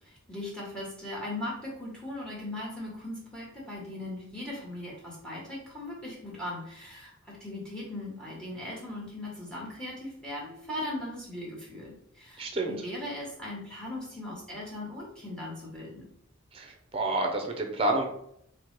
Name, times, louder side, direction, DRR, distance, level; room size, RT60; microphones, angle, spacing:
voice 1, 0.0-16.0, left 1 dB, 5° left, -4 dB, 1.0 m, -39 dB
voice 2, 12.4-12.8 16.5-18.1, right 2 dB, 30° right, 3 dB, 0.5 m, -29 dB
4.4 x 2.1 x 3.1 m, 0.71 s
head